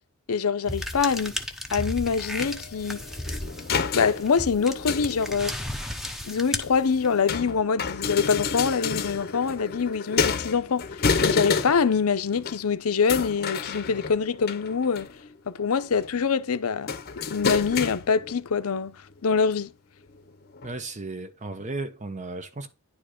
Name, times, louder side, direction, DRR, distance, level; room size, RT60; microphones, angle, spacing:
voice 1, 0.3-1.4 1.7-3.0 3.9-5.6 6.3-10.9 11.2-15.1 15.5-17.0 17.3-19.7, left 5 dB, 85° left, 0.6 m, -25 dB
sound 1, 0.7-7.3, left 1 dB, ahead, 0.9 m, -35 dB
sound 2, 2.4-5.7 6.5-12.0 12.3-12.6 13.1-15.3 15.7-16.1 16.9-18.4 19.3-19.4 20.1-20.2 20.6-20.7, left 5 dB, 45° left, 0.7 m, -30 dB
voice 2, 20.6-22.7, right 3 dB, 35° right, 0.9 m, -35 dB
10.5 x 4.6 x 5.0 m
head